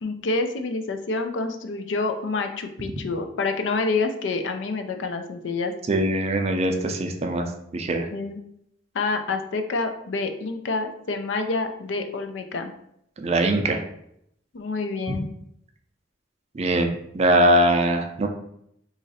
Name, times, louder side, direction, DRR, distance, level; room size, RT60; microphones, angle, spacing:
voice 1, 0.0-5.7 8.1-8.4 8.9-12.7 14.5-15.3, left 3 dB, 75° left, 6 dB, 0.4 m, -27 dB
voice 2, 5.9-7.5 7.7-8.1 13.2-13.8 16.5-18.3, right 1 dB, 35° right, 4 dB, 0.4 m, -21 dB
3.0 x 2.5 x 4.0 m, 0.74 s
head